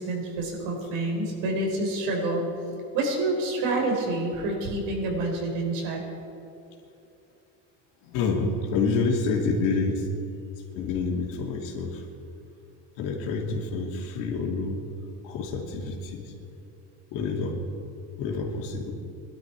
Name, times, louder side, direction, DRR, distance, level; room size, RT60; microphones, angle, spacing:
voice 1, 0.0-6.0, right 2 dB, 85° right, 1 dB, 4.5 m, -28 dB
voice 2, 8.0-10.1 10.7-12.0 13.0-14.8 15.2-16.3 17.1-17.6 18.2-18.9, left 4 dB, 75° left, 1 dB, 2.7 m, -28 dB
22.0 x 12.0 x 4.8 m, 2.7 s
cardioid pair, 160°, 33 cm